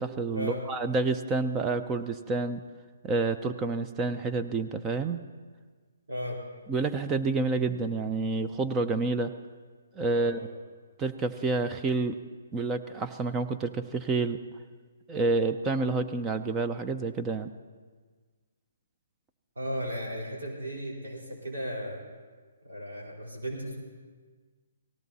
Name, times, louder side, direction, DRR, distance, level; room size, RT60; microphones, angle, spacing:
voice 1, 0.0-2.6 3.0-5.2 6.7-9.3 10.0-10.4 11.0-12.2 12.5-14.4 15.1-17.5, right 3 dB, 15° right, 9 dB, 0.5 m, -28 dB
voice 2, 6.1-6.4 10.1-10.5 19.6-22.0 22.6-23.8, equal, 90° right, -2 dB, 4.2 m, -35 dB
18.5 x 16.0 x 4.2 m, 1.5 s
hypercardioid pair, 150°, 0 cm